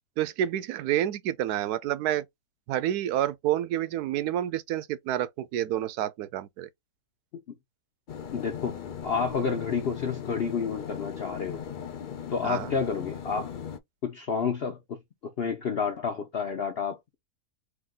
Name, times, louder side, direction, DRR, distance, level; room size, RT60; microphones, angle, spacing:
voice 1, 0.2-2.2 2.7-6.7 12.4-12.7, right 12 dB, 90° right, 1.1 m, -29 dB
sound 1, 8.1-13.8, left 8 dB, 75° left, 0.4 m, -38 dB
voice 2, 8.3-8.8 9.0-11.6 12.3-13.6 14.0-14.8 15.4-17.2, left 5 dB, 50° left, 0.8 m, -30 dB
3.6 x 2.7 x 3.7 m
omnidirectional pair, 1.6 m